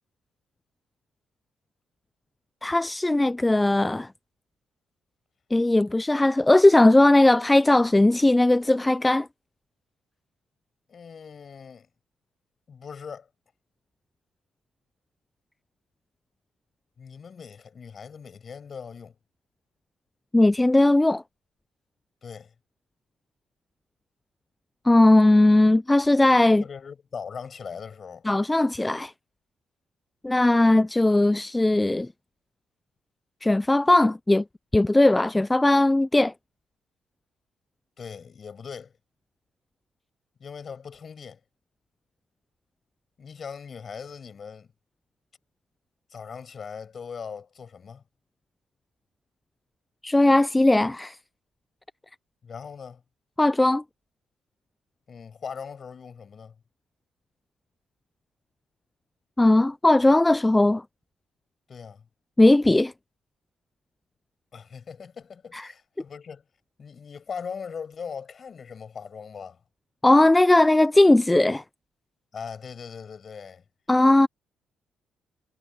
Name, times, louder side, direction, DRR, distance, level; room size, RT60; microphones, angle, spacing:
voice 1, 2.6-4.1 5.5-9.3 20.3-21.2 24.8-26.6 28.3-29.1 30.2-32.1 33.4-34.4 34.7-36.3 50.0-51.2 53.4-53.8 59.4-60.8 62.4-62.9 65.5-65.7 70.0-71.6 73.9-74.3, left 2 dB, 15° left, 0.4 m, -18 dB
voice 2, 10.9-11.9 12.7-13.3 17.0-19.2 22.2-22.5 26.6-28.3 38.0-38.9 40.4-41.4 43.2-44.7 46.1-48.0 52.4-53.0 55.1-56.5 61.7-62.1 64.5-66.4 66.8-69.6 72.3-73.6, left 6 dB, 45° left, 7.7 m, -40 dB
cardioid pair, 90°, 0 cm